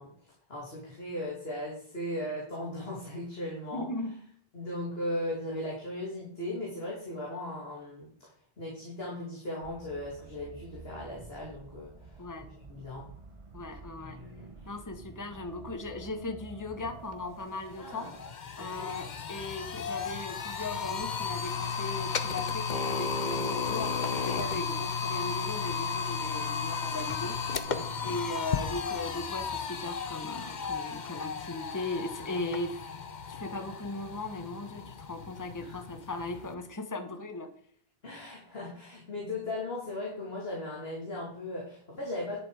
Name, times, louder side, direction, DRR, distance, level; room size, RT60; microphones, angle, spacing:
voice 1, 0.0-3.9 4.5-12.2 12.6-13.1 14.0-14.7 17.8-18.1 18.7-18.9 27.7-27.8 28.3-28.4 35.6-35.8 38.0-42.4, left 1 dB, 75° left, -4 dB, 3.1 m, -38 dB
voice 2, 3.7-4.1 12.2-12.5 13.5-14.2 14.7-18.1 18.6-27.4 28.0-32.9 33.3-37.5, left 2 dB, 20° left, 8 dB, 1.1 m, -38 dB
sound 1, 9.6-18.4, right 3 dB, 35° right, 0.9 m, -50 dB
sound 2, 17.1-17.2 17.5-36.5, left 5 dB, 50° left, 0.9 m, -34 dB
11.0 x 6.9 x 4.9 m, 0.63 s
omnidirectional pair, 1.0 m